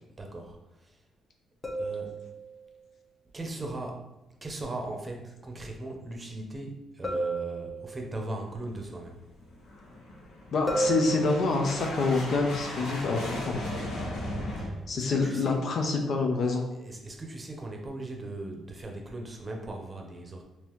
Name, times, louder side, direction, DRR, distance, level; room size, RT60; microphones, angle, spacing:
voice 1, 0.2-0.6 0.8-0.9 1.8-2.1 3.3-4.0 4.4-9.2 14.2-15.6 16.7-20.4, right 2 dB, 25° right, 2 dB, 0.7 m, -39 dB
sound 1, 1.6-2.7 7.0-8.3 10.7-11.9 15.2-15.4, right 2 dB, 15° left, 1.0 m, -33 dB
sound 2, 8.4-14.7, left 1 dB, 85° left, 1.2 m, -37 dB
voice 2, 10.5-13.6 14.9-16.7, left 3 dB, 60° left, 3 dB, 0.6 m, -27 dB
3.8 x 2.8 x 3.0 m, 0.95 s
cardioid pair, 90°, 0 cm